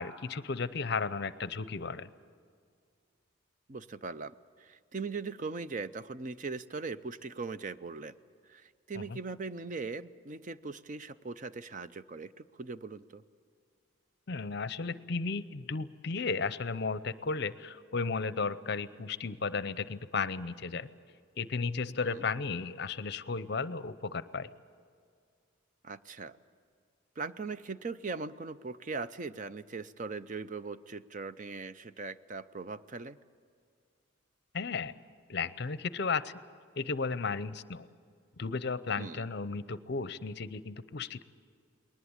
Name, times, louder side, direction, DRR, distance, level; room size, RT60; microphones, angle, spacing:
voice 1, 0.0-2.1 9.0-9.2 14.3-20.9 21.4-24.5 34.5-34.9 35.3-36.3 36.8-37.9 38.4-41.2, left 4 dB, 50° left, 15 dB, 0.6 m, -34 dB
voice 2, 3.7-8.1 8.5-13.2 22.0-22.3 25.8-26.4 27.2-33.2 39.0-39.3, right 4 dB, 40° right, 13 dB, 0.5 m, -40 dB
21.0 x 19.5 x 8.7 m, 2.2 s
head